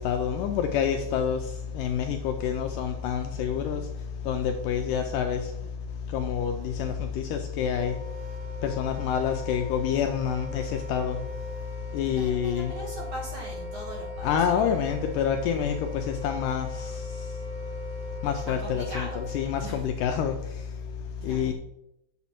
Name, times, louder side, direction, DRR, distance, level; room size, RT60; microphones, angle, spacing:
voice 1, 0.0-3.8 4.3-5.5 6.1-7.9 8.6-11.2 11.9-12.8 14.2-17.0 18.2-20.4 21.2-21.5, left 8 dB, 80° left, 1.9 m, -27 dB
Wind instrument woodwind instrument, 7.7-19.6, left 1 dB, 90° right, 4.1 m, -41 dB
voice 2, 12.1-14.7 15.0-15.1 18.4-19.2 19.6-19.8 21.2-21.5, equal, 40° right, 2.2 m, -39 dB
8.3 x 6.8 x 4.3 m
omnidirectional pair, 4.2 m